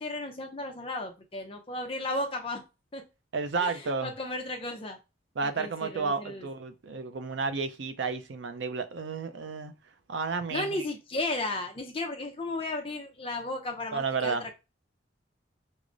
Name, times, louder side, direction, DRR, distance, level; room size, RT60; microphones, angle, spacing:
voice 1, 0.0-2.6 2.9-3.0 3.6-5.0 5.4-6.5 10.5-14.5, left 2 dB, 30° left, 0.5 m, -34 dB
voice 2, 3.3-4.1 5.4-9.7 10.1-10.9 13.9-14.5, right 4 dB, 80° right, 0.5 m, -32 dB
4.7 x 2.0 x 2.5 m
head